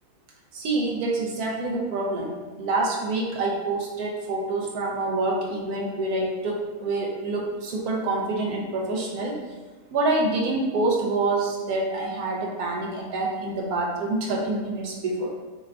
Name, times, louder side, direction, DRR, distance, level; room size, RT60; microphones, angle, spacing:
voice 1, 0.5-2.3 2.6-9.4 9.9-15.3, right 2 dB, 75° right, -1 dB, 1.0 m, -26 dB
2.8 x 2.4 x 3.2 m, 1.3 s
omnidirectional pair, 1.7 m